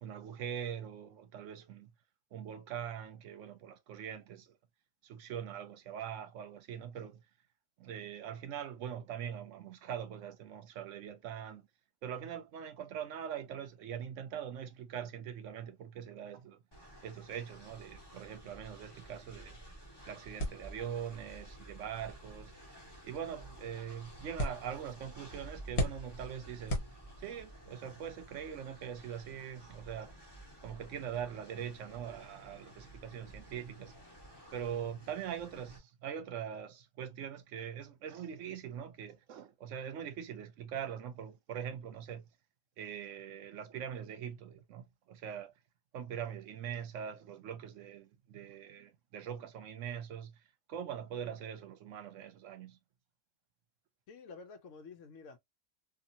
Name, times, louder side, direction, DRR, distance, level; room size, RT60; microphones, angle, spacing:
voice 1, 0.0-1.9 2.3-4.6 5.0-7.2 7.8-11.6 12.0-16.6 17.0-19.6 20.1-22.5 23.0-26.8 27.2-30.1 30.6-33.9 34.5-42.2 42.8-45.5 45.9-50.4 50.7-52.8, right 8 dB, 75° right, 0.9 m, -42 dB
Train, 16.7-35.8, right 1 dB, 20° left, 1.3 m, -53 dB
sound 1, 20.4-27.5, equal, 55° left, 1.2 m, -41 dB
voice 2, 54.1-55.4, left 4 dB, 75° left, 1.0 m, -50 dB
2.7 x 2.6 x 2.6 m
omnidirectional pair, 1.4 m